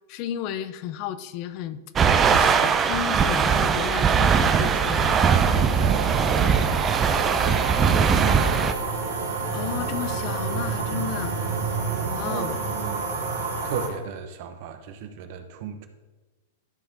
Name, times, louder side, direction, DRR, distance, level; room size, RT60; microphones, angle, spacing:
voice 1, 0.1-1.8 2.3-5.2 9.5-11.4 12.1-12.5, left 10 dB, 45° left, 12 dB, 0.6 m, -33 dB
sound 1, 2.0-8.7, right 6 dB, 25° right, 0.6 m, -20 dB
sound 2, 3.1-13.9, right 4 dB, 85° right, 2.3 m, -30 dB
voice 2, 5.7-8.9 12.0-13.0 13.6-15.9, right 7 dB, 55° right, 8 dB, 1.0 m, -36 dB
12.5 x 4.9 x 4.0 m, 1.2 s
hypercardioid pair, 125°, 0 cm